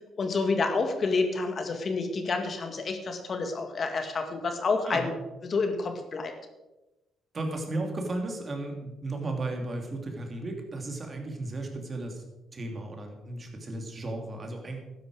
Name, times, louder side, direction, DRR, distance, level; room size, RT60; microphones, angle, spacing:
voice 1, 0.2-5.1 5.4-6.3, left 4 dB, 45° left, 6 dB, 1.9 m, -29 dB
voice 2, 7.3-12.2 12.5-14.8, right 2 dB, 35° right, 3 dB, 3.0 m, -34 dB
12.5 x 10.0 x 5.0 m, 1.0 s
cardioid pair, 85°, 0 cm